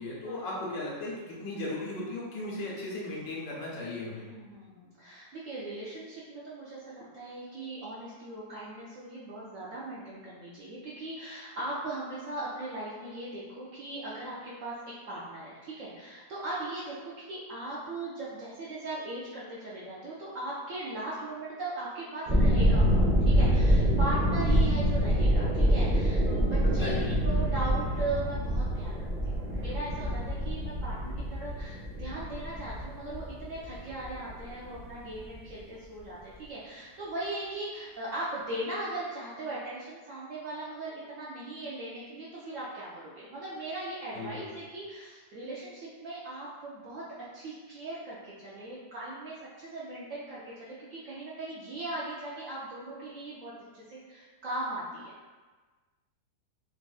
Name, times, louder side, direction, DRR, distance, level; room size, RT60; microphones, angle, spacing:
voice 1, 0.0-4.3 24.5-24.6 26.8-27.1 44.1-44.5, left 2 dB, 80° left, -5 dB, 1.5 m, -36 dB
voice 2, 4.2-47.1 47.3-55.1, right 2 dB, 85° right, -8 dB, 0.7 m, -39 dB
sound 1, 22.2-34.8 35.1-35.5, equal, 40° right, 0.8 m, -26 dB
3.8 x 2.3 x 2.3 m, 1.4 s
omnidirectional pair, 1.9 m